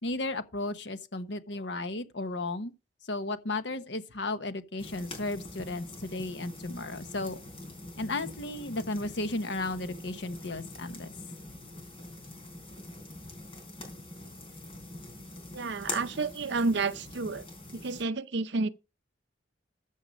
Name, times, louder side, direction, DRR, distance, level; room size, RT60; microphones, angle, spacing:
voice 1, 0.0-2.7 3.0-7.4 8.0-11.1, left 2 dB, 65° left, 1.1 m, -34 dB
sound 1, 4.8-18.0, left 2 dB, 30° left, 3.8 m, -44 dB
voice 2, 15.5-17.5 17.7-18.7, right 3 dB, 65° right, 0.7 m, -30 dB
14.0 x 5.7 x 5.3 m
head